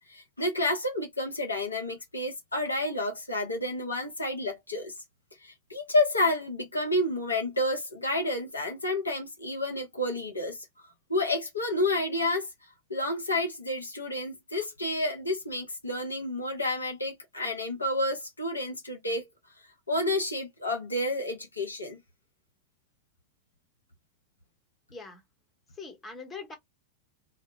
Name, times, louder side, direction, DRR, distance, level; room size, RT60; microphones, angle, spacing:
voice 1, 0.1-4.9 5.4-10.6 11.1-12.5 12.9-19.2 19.9-22.0, left 1 dB, 80° left, 0.6 m, -30 dB
voice 2, 24.9-25.2 25.8-26.5, left 4 dB, 20° left, 0.8 m, -42 dB
2.0 x 2.0 x 3.0 m
figure-of-eight pair, 90°, 0 cm